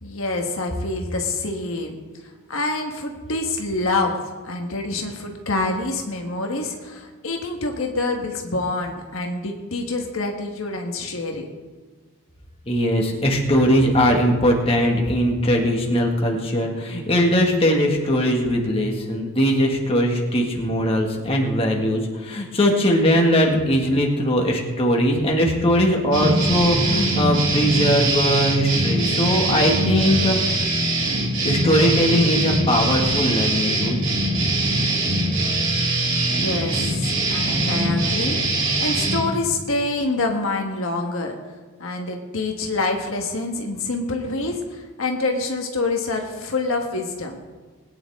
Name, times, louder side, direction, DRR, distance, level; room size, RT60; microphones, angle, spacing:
voice 1, 0.0-2.0 2.5-4.1 4.4-11.4 36.3-41.3 41.8-47.4, left 2 dB, 70° left, 2 dB, 1.4 m, -26 dB
voice 2, 12.6-30.4 31.4-34.0, equal, 25° left, 0 dB, 1.9 m, -20 dB
sound 1, 26.1-39.2, right 2 dB, 60° right, 4.5 m, -22 dB
21.5 x 9.7 x 3.7 m, 1.4 s
head